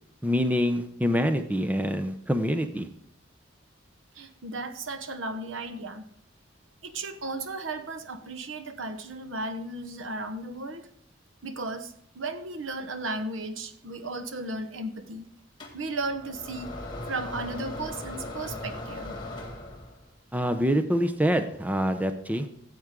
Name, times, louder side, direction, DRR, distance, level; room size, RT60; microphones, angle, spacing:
voice 1, 0.2-2.9 20.3-22.5, equal, 10° right, 8 dB, 0.6 m, -25 dB
voice 2, 4.1-6.1 6.8-10.9 11.4-15.3 15.7-16.7 17.1-19.2, right 2 dB, 85° right, 9 dB, 1.0 m, -35 dB
sound 1, 15.6-20.1, left 2 dB, 20° left, 1.9 m, -38 dB
14.0 x 8.0 x 3.7 m, 0.69 s
head